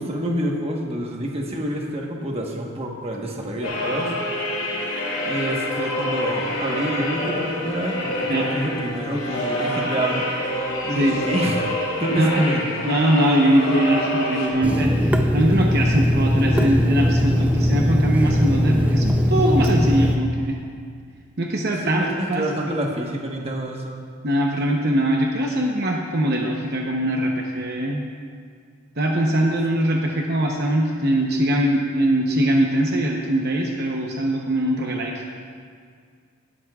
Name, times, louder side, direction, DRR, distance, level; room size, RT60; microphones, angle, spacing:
voice 1, 0.0-4.1 5.2-10.3 10.8-11.7 12.0-12.9 21.8-24.0, right 1 dB, 30° right, 0 dB, 1.3 m, -27 dB
sound 1, 3.6-14.5, left 1 dB, 65° left, 2.6 m, -27 dB
voice 2, 12.2-12.5 12.8-20.6 21.4-22.4 24.2-28.1 29.0-35.2, right 1 dB, 50° right, 0 dB, 0.9 m, -22 dB
Water tap faucet / Sink (filling or washing), 14.6-20.2, left 1 dB, 5° right, 0.5 m, -20 dB
18.0 x 12.5 x 2.4 m, 2.1 s
head